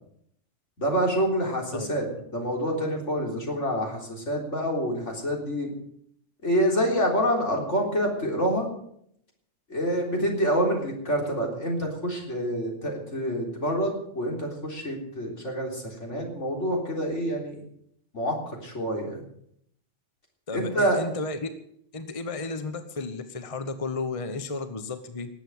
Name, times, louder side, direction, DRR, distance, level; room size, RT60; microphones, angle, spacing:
voice 1, 0.8-2.0 2.3-5.7 6.4-8.7 9.7-17.6 18.1-19.2 20.5-21.0, equal, 70° left, 0 dB, 4.1 m, -27 dB
voice 2, 20.5-21.5 21.9-25.3, left 3 dB, 30° left, 9 dB, 1.1 m, -33 dB
19.0 x 8.2 x 7.9 m, 0.69 s
omnidirectional pair, 1.3 m